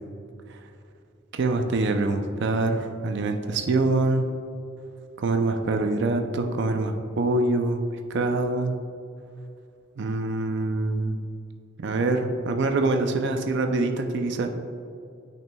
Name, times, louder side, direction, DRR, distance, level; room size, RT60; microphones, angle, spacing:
voice 1, 1.3-4.3 5.2-7.8 8.1-8.7 10.0-11.2 11.8-14.5, right 2 dB, 65° right, 5 dB, 0.4 m, -25 dB
9.0 x 5.9 x 2.3 m, 2.6 s
head